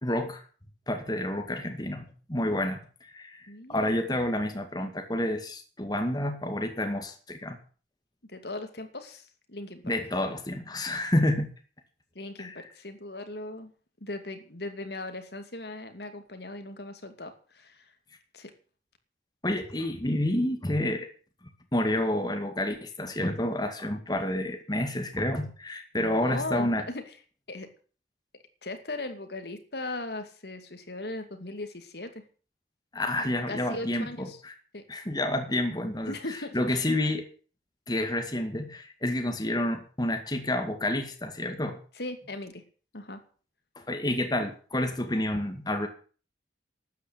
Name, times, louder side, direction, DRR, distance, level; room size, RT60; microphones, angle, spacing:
voice 1, 0.0-0.4 0.9-7.6 9.8-11.5 12.4-12.6 19.4-21.1 21.7-26.8 32.9-34.5 34.9-36.1 36.5-37.3 37.9-41.8 43.8-45.9, left 1 dB, 25° left, 5 dB, 2.0 m, -29 dB
voice 2, 3.5-4.0 8.3-9.8 12.1-13.7 14.0-17.9 18.3-18.5 25.9-27.2 27.5-27.7 28.6-32.2 33.5-34.4 34.7-34.9 36.1-36.9 41.9-42.6 42.9-43.2, left 2 dB, 65° left, 7 dB, 2.6 m, -38 dB
12.5 x 9.4 x 8.8 m, 0.40 s
head